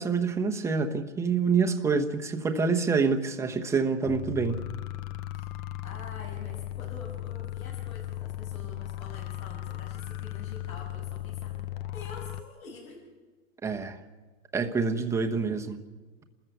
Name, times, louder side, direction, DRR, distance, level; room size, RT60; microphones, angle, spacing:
voice 1, 0.0-4.6 13.6-14.0 14.5-15.8, right 5 dB, 5° right, 4 dB, 1.0 m, -27 dB
sound 1, 4.1-12.4, left 14 dB, 25° left, 0.6 m, -37 dB
voice 2, 5.8-13.0, left 3 dB, 90° left, -4 dB, 6.4 m, -46 dB
29.5 x 14.0 x 8.2 m, 1.4 s
hypercardioid pair, 140°, 41 cm